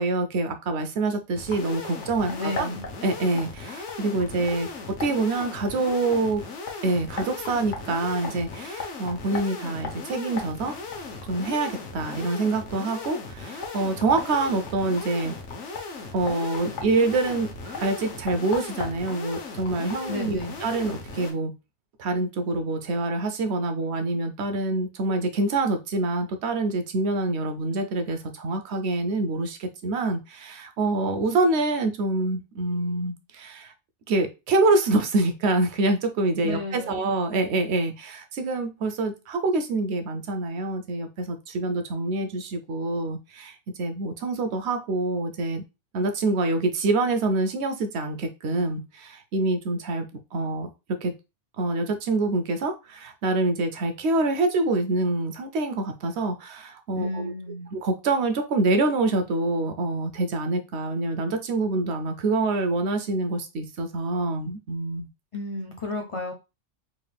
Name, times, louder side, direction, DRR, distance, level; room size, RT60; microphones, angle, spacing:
voice 1, 0.0-2.7 3.0-4.7 5.0-6.4 6.8-10.7 11.3-15.4 16.1-21.5 22.0-33.7 34.1-45.6 45.9-50.0 50.3-51.1 51.6-57.3 57.7-65.1, right 2 dB, 70° right, 7 dB, 0.9 m, -26 dB
sound 1, 1.3-21.3, left 4 dB, 80° left, 1.2 m, -36 dB
voice 2, 2.3-2.8 20.1-20.6 36.4-37.0 56.9-57.7 65.3-66.3, left 2 dB, 55° left, 2 dB, 0.3 m, -32 dB
3.8 x 3.4 x 2.3 m, 0.27 s
omnidirectional pair, 1.2 m